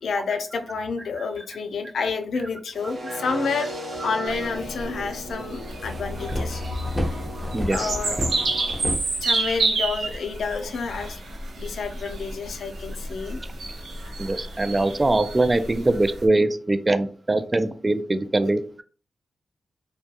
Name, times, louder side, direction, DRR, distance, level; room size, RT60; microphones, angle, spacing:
voice 1, 0.0-3.7 4.0-6.6 7.7-8.2 9.2-11.2 11.6-13.4, left 4 dB, 80° left, 6 dB, 0.4 m, -29 dB
sound 1, 2.7-8.7, right 1 dB, 65° right, 1.1 m, -37 dB
sound 2, 4.3-16.2, right 3 dB, 80° right, 0.6 m, -30 dB
sound 3, 5.1-5.2 5.5-9.7, left 1 dB, 10° right, 0.7 m, -31 dB
voice 2, 7.5-7.9 14.2-18.6, right 2 dB, 30° right, 10 dB, 0.3 m, -22 dB
2.3 x 2.2 x 2.7 m, 0.42 s
cardioid pair, 50°, 0 cm